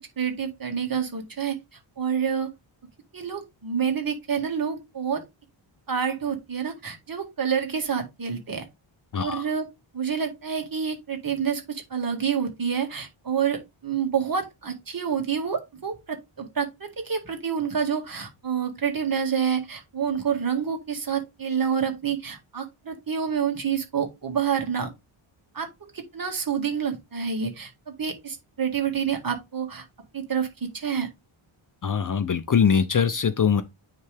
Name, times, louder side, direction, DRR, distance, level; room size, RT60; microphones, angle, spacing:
voice 1, 0.2-1.6 2.0-2.5 3.1-5.2 5.9-8.7 9.2-9.7 9.9-24.9 25.5-25.7 25.9-29.8 30.1-31.1, right 7 dB, 45° right, 2.0 m, -28 dB
voice 2, 9.1-9.4 31.8-33.6, left 7 dB, 40° left, 0.6 m, -22 dB
9.4 x 3.4 x 3.4 m
wide cardioid pair, 140°, 50 cm